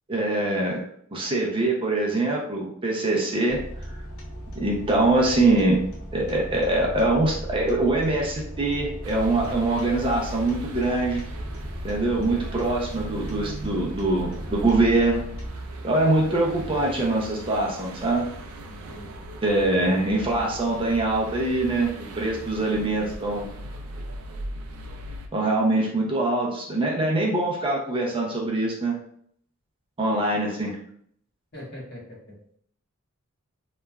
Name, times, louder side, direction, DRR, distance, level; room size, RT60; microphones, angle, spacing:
voice 1, 0.1-0.8 1.1-3.6 4.5-5.8 6.1-11.2 11.8-15.3 15.8-18.3 19.4-23.5 25.3-29.0 30.0-30.8, right 2 dB, 25° right, -2 dB, 0.5 m, -23 dB
sound 1, 3.5-15.5, equal, 85° left, 0.7 m, -37 dB
sound 2, 9.0-25.3, right 1 dB, 80° right, 0.4 m, -38 dB
voice 2, 18.7-19.3 31.5-32.4, left 1 dB, 55° left, -5 dB, 1.1 m, -42 dB
3.0 x 2.3 x 2.2 m, 0.65 s
head